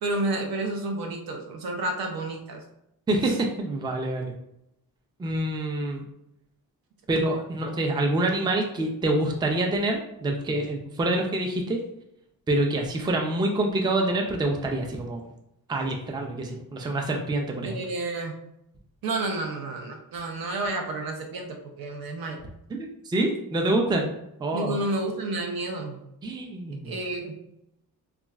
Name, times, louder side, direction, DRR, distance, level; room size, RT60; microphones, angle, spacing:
voice 1, 0.0-2.6 3.2-3.4 17.6-18.3 19.0-22.4 24.5-26.0 26.8-27.4, right 2 dB, 70° right, 3 dB, 0.7 m, -30 dB
voice 2, 3.1-4.3 5.2-6.0 7.1-11.8 12.5-15.3 15.7-17.8 22.7-24.1 24.4-24.8 26.2-26.9, right 2 dB, 10° right, 1 dB, 0.4 m, -26 dB
2.9 x 2.3 x 2.3 m, 0.82 s
cardioid pair, 90°, 37 cm